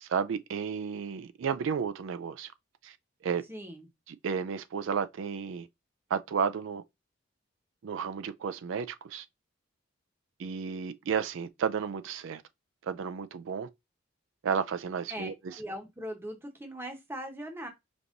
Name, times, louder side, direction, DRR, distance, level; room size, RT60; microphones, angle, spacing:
voice 1, 0.0-2.5 2.8-3.0 3.2-3.4 4.1-5.7 6.1-6.8 7.8-9.3 10.4-12.4 12.8-13.7 14.4-15.6, right 6 dB, 65° right, 0.4 m, -32 dB
voice 2, 3.5-3.9 15.1-17.7, equal, 10° right, 0.9 m, -40 dB
5.1 x 2.9 x 2.5 m
head